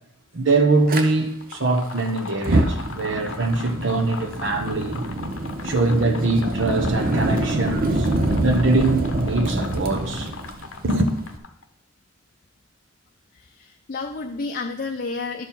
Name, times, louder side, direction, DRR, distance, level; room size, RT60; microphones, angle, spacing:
voice 1, 0.3-5.0 5.6-10.3 10.8-11.1, right 2 dB, 70° right, 1.1 m, -22 dB
Fire, 0.9-1.0 2.3-11.4, right 1 dB, 45° right, 0.7 m, -25 dB
sound 1, 1.3-11.6, left 5 dB, 85° left, 0.7 m, -39 dB
voice 2, 13.3-15.5, left 3 dB, 45° left, 0.5 m, -31 dB
11.5 x 4.6 x 5.5 m
head